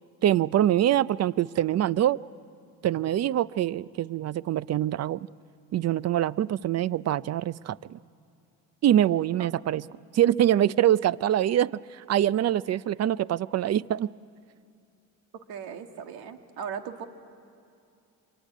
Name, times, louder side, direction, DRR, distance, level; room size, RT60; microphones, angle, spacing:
voice 1, 0.2-2.2 2.8-5.3 5.7-8.0 8.8-9.8 10.1-14.1, right 11 dB, 45° right, 19 dB, 0.6 m, -24 dB
voice 2, 15.3-17.1, right 7 dB, 80° right, 6 dB, 1.9 m, -38 dB
25.5 x 23.5 x 9.4 m, 2.5 s
cardioid pair, 90°, 37 cm